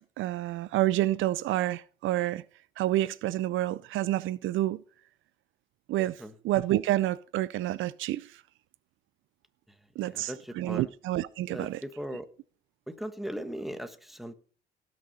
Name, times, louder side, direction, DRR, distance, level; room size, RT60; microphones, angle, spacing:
voice 1, 0.2-2.4 2.8-4.8 5.9-6.2 6.4-8.3 10.0-11.8, right 14 dB, 85° right, 0.5 m, -28 dB
voice 2, 10.0-10.9 11.5-12.3 12.9-14.3, equal, ahead, 1.4 m, -38 dB
17.5 x 6.3 x 4.2 m
cardioid pair, 90°, 20 cm